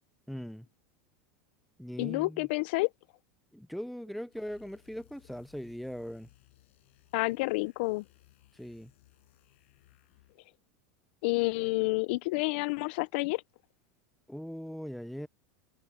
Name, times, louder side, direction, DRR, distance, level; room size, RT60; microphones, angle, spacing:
voice 1, 0.3-0.7 1.8-2.5 3.5-6.3 8.6-8.9 14.3-15.3, equal, ahead, 0.4 m, -40 dB
voice 2, 2.0-2.9 7.1-8.1 11.2-13.4, left 24 dB, 60° left, 0.4 m, -29 dB
sound 1, 4.3-10.5, left 17 dB, 80° left, 7.1 m, -63 dB
supercardioid pair, 155°, 7 cm